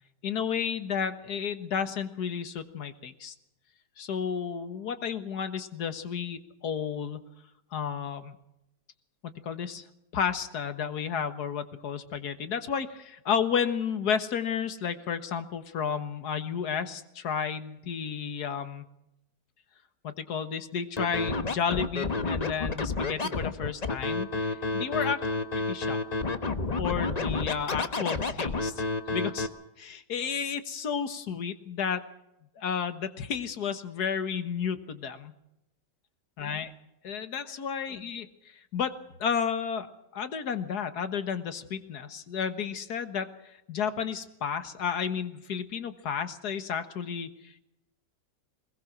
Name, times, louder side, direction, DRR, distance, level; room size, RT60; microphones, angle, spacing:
voice 1, 0.2-3.3 4.0-7.2 7.7-8.4 9.4-9.8 10.1-18.8 20.0-25.2 25.6-26.0 26.8-28.8 29.1-29.5 29.8-32.0 32.6-35.3 36.4-36.7 37.0-39.9 40.1-43.3 43.7-47.6, left 7 dB, 65° left, 11 dB, 1.9 m, -32 dB
Scratching (performance technique), 21.0-29.5, left 3 dB, 30° left, 0.9 m, -30 dB
21.5 x 21.0 x 6.0 m, 0.85 s
omnidirectional pair, 1.9 m